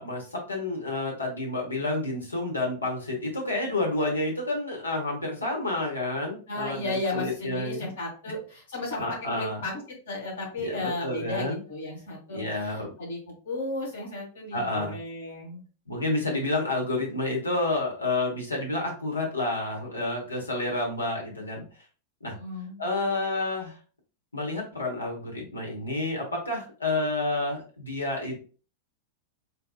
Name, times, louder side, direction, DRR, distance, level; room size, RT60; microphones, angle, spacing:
voice 1, 0.0-7.8 9.0-9.7 10.6-11.6 12.3-12.9 14.5-15.0 15.9-21.7 22.2-22.3 22.8-23.8 24.3-28.4, left 2 dB, 80° left, -1 dB, 1.1 m, -29 dB
voice 2, 6.5-9.8 10.1-13.2 13.4-15.6 22.2-22.8, left 2 dB, 60° left, -2 dB, 1.7 m, -34 dB
3.9 x 2.8 x 2.4 m, 0.38 s
figure-of-eight pair, 90°, 0 cm